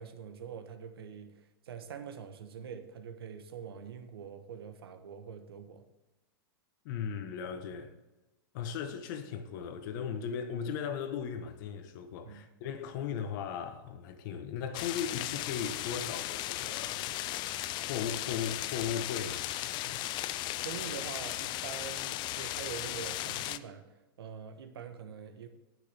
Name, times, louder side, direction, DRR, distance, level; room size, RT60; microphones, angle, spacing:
voice 1, 0.0-5.8 12.2-12.4 20.6-23.9 24.2-25.5, right 7 dB, 90° right, 1.3 m, -44 dB
voice 2, 6.8-8.0 8.5-17.1 17.9-19.5 19.9-20.0, left 7 dB, 60° left, 1.3 m, -37 dB
sound 1, 14.7-23.6, left 15 dB, 35° left, 0.5 m, -36 dB
17.0 x 6.3 x 3.6 m
hypercardioid pair, 130°, 12 cm